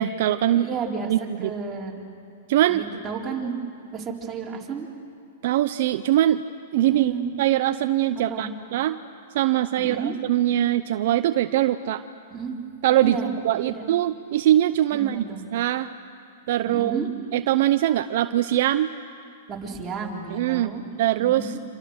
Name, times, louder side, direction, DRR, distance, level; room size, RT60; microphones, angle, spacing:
voice 1, 0.0-0.7 1.1-1.5 2.5-2.8 5.4-6.4 6.7-7.1 7.4-9.0 9.3-12.0 12.8-15.2 15.5-15.9 16.5-17.0 17.3-18.9 20.3-20.7 21.0-21.5, right 13 dB, 60° right, 10 dB, 0.7 m, -22 dB
voice 2, 0.5-2.0 2.7-3.6 3.9-4.9 6.8-7.3 8.1-8.5 9.8-10.2 12.3-12.5 13.0-13.3 13.6-13.9 14.9-15.4 16.7-17.1 19.5-20.8 21.2-21.6, right 5 dB, 15° right, -4 dB, 4.2 m, -32 dB
29.0 x 27.0 x 6.6 m, 2.4 s
hypercardioid pair, 140°, 0 cm